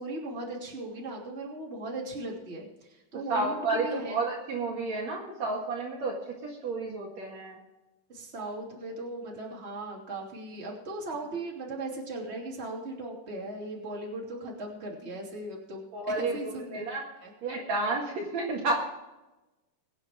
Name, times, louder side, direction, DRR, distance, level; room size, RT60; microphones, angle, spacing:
voice 1, 0.0-4.2 8.1-15.9 16.1-16.9 17.2-17.3, right 2 dB, 20° right, -2 dB, 2.8 m, -38 dB
voice 2, 3.3-7.6 15.9-16.4 16.7-17.1 17.4-18.7, right 3 dB, 55° right, -2 dB, 2.8 m, -31 dB
23.0 x 8.9 x 3.7 m, 1.0 s
omnidirectional pair, 4.1 m